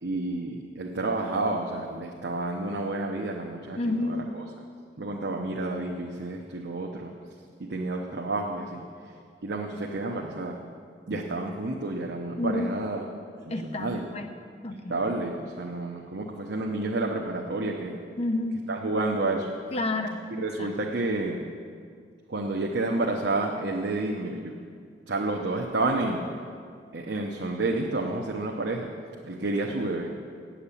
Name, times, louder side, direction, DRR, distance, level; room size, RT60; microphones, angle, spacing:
voice 1, 0.0-4.4 5.0-7.1 7.6-8.8 9.4-10.6 11.1-13.0 13.5-14.2 14.9-18.0 18.7-19.5 20.3-21.4 22.3-24.5 25.1-26.2 26.9-28.9 29.2-30.2, right 2 dB, 70° right, 0 dB, 0.8 m, -30 dB
voice 2, 3.8-4.3 12.4-12.9 13.5-14.3 14.6-15.0 18.2-18.6 19.7-20.7, left 2 dB, 35° left, 6 dB, 0.7 m, -30 dB
9.1 x 7.3 x 8.4 m, 2.2 s
head